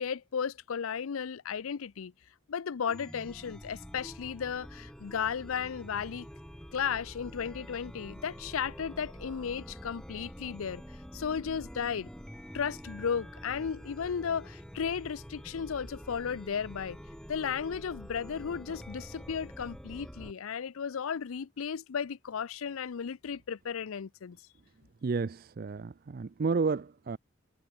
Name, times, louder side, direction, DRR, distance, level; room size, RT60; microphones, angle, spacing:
voice 1, 0.0-2.1 2.5-6.3 6.7-10.8 11.1-12.1 12.5-17.0 17.3-24.4, left 7 dB, 85° left, 0.5 m, -34 dB
Chime, 2.9-20.3, equal, 5° left, 1.4 m, -47 dB
voice 2, 25.0-27.2, right 4 dB, 45° right, 0.4 m, -31 dB
head